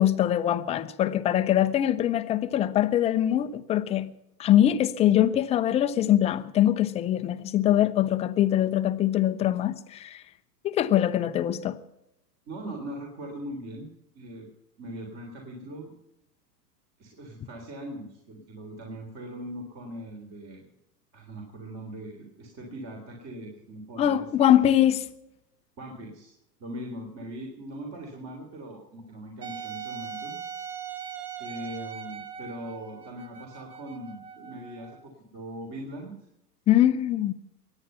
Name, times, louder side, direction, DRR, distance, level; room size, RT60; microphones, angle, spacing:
voice 1, 0.0-4.1 4.4-10.2 10.6-11.8 24.0-25.1 36.7-37.3, left 11 dB, 15° left, 0.5 m, -23 dB
voice 2, 12.5-13.9 14.1-14.5 14.8-15.9 17.0-20.6 21.1-24.3 25.8-26.3 26.6-30.4 31.4-36.2, right 1 dB, 30° right, 3.5 m, -40 dB
Wind instrument woodwind instrument, 29.4-35.0, right 8 dB, 70° right, 1.8 m, -40 dB
23.5 x 9.7 x 5.6 m
hypercardioid pair, 115°, 49 cm